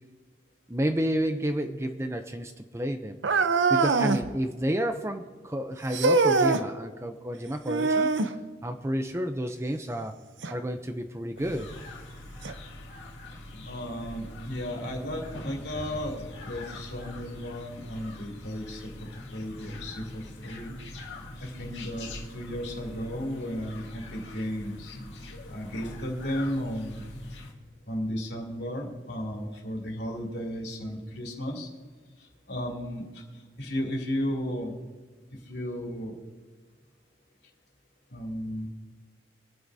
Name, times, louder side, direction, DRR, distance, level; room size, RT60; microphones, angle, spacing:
voice 1, 0.7-3.2 3.7-8.1 8.6-10.2 10.5-11.7, equal, 15° right, 7 dB, 0.6 m, -30 dB
sound 1, 3.2-4.3 5.9-6.7 7.7-8.4 10.4-10.5 11.4-11.5 12.4-12.5, right 3 dB, 90° right, 0.7 m, -23 dB
sound 2, 11.4-27.5, left 1 dB, 90° left, 2.0 m, -43 dB
voice 2, 13.6-16.1 16.4-20.7 21.4-25.0 25.5-27.1 27.9-31.7 32.2-34.8 35.3-36.1 38.1-38.7, equal, 65° left, -1 dB, 3.0 m, -34 dB
24.5 x 9.5 x 2.7 m, 1.4 s
head